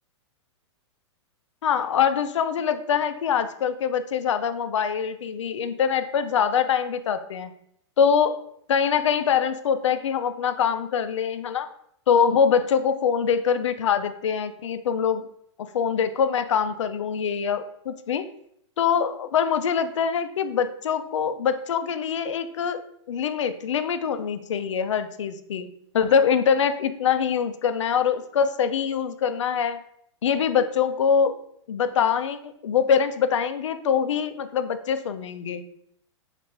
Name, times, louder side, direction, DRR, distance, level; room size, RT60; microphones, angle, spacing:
voice 1, 1.6-7.5 8.0-8.4 8.7-11.7 12.1-15.3 15.6-18.3 18.8-22.8 23.1-25.7 25.9-29.8 30.2-31.4 31.7-35.6, left 7 dB, 80° left, 10 dB, 0.4 m, -24 dB
3.2 x 2.5 x 4.4 m, 0.71 s
hypercardioid pair, 115°, 15 cm